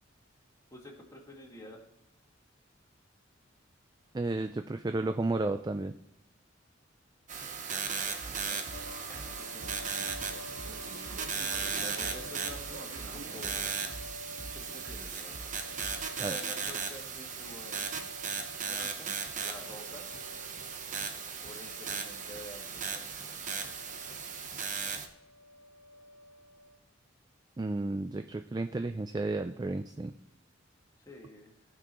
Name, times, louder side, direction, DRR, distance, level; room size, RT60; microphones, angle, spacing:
voice 1, 0.7-1.8 8.2-10.4 11.8-13.7 14.5-15.4 16.2-18.1 18.6-20.1 21.4-23.4 31.0-31.6, left 1 dB, 15° left, -1 dB, 1.9 m, -49 dB
voice 2, 4.1-5.9 16.2-16.4 27.6-30.1, right 2 dB, 20° right, 8 dB, 0.3 m, -32 dB
sound 1, 7.3-25.1, right 6 dB, 40° right, 0.9 m, -37 dB
sound 2, 8.2-16.0, right 2 dB, 75° right, 1.6 m, -46 dB
sound 3, 8.7-26.8, left 1 dB, 75° left, 1.4 m, -50 dB
18.0 x 6.1 x 3.1 m, 0.87 s
head